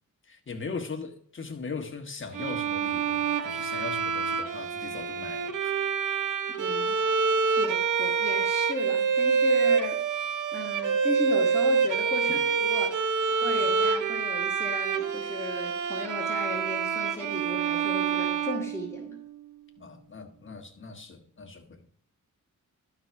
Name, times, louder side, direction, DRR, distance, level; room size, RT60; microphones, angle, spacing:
voice 1, 0.2-5.8 19.8-21.8, left 4 dB, 40° left, 1.4 m, -39 dB
Bowed string instrument, 2.3-19.3, right 6 dB, 85° right, 0.9 m, -27 dB
voice 2, 6.6-7.0 7.6-10.0 10.5-12.9 13.4-19.2, left 1 dB, 10° left, 1.9 m, -36 dB
12.0 x 4.0 x 5.8 m
wide cardioid pair, 110°, 31 cm